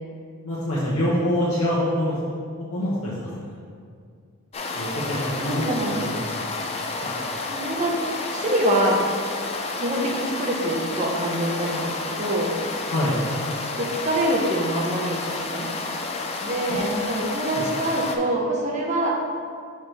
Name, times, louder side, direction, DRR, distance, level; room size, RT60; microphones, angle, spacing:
voice 1, 0.4-2.4 2.7-3.6 4.7-6.1 7.0-7.1 12.9-13.2 16.7-17.1 17.5-17.7, left 1 dB, 80° left, -8 dB, 1.2 m, -26 dB
sound 1, 4.5-18.2, left 3 dB, 30° left, 0.5 m, -30 dB
voice 2, 5.4-6.0 7.5-8.0 8.3-9.0 9.8-12.5 13.8-15.7 16.4-19.2, right 1 dB, 30° right, -1 dB, 0.9 m, -25 dB
6.0 x 5.8 x 3.4 m, 2.2 s
head